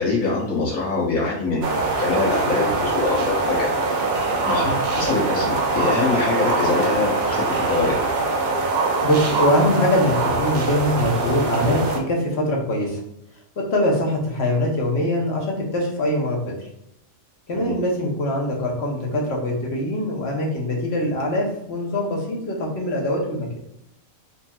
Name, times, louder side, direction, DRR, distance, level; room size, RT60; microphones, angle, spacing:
voice 1, 0.0-3.7 4.4-7.4 7.7-7.9 17.6-17.7, left 3 dB, 80° left, -4 dB, 1.6 m, -24 dB
sound 1, 1.6-12.0, right 3 dB, 75° right, 0.4 m, -23 dB
voice 2, 8.7-13.0 13.6-16.5 17.5-23.5, left 1 dB, 55° left, -1 dB, 1.1 m, -23 dB
4.3 x 2.8 x 2.3 m, 0.79 s
omnidirectional pair, 1.5 m